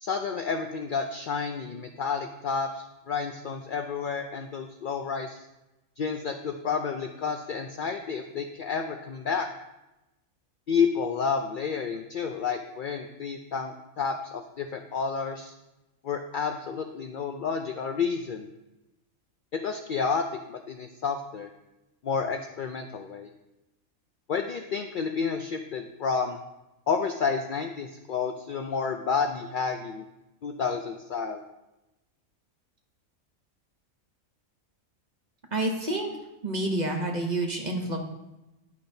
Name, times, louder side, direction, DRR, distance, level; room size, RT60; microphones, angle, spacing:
voice 1, 0.0-5.4 6.0-9.5 10.7-15.5 16.0-18.5 19.5-21.5 22.0-23.3 24.3-26.4 26.9-30.0 30.4-31.4, left 5 dB, 85° left, 5 dB, 0.4 m, -30 dB
voice 2, 35.5-36.1 36.4-38.0, right 1 dB, 40° right, 2 dB, 0.8 m, -28 dB
10.5 x 5.1 x 2.6 m, 0.96 s
omnidirectional pair, 1.4 m